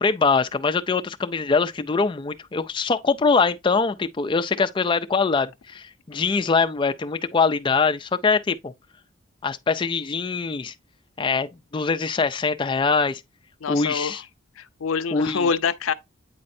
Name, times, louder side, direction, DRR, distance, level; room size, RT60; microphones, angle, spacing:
voice 1, 0.0-8.7 9.4-10.7 11.2-13.2 13.7-14.2 15.1-15.5, left 4 dB, 25° left, 0.4 m, -23 dB
voice 2, 13.6-14.1 14.6-15.9, left 5 dB, 85° left, 0.5 m, -25 dB
8.7 x 4.3 x 2.6 m
head